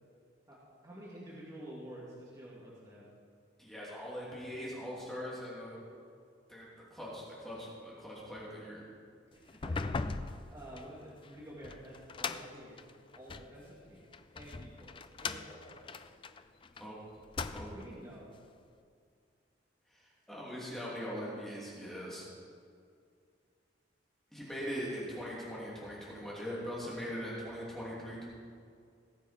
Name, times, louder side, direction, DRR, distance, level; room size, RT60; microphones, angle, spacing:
voice 1, 0.8-3.1 9.3-10.2 10.5-12.8 13.2-14.1 14.3-16.1 17.6-18.3, equal, 20° right, -7 dB, 2.4 m, -49 dB
voice 2, 3.6-5.8 6.5-8.8 16.7-17.0 17.5-17.7 19.9-22.3 24.3-28.2, equal, ahead, -7 dB, 2.9 m, -41 dB
sound 1, 9.5-13.5 14.1-16.8 17.2-18.0, left 4 dB, 25° left, 0.4 m, -40 dB
18.0 x 7.5 x 5.1 m, 2.3 s
head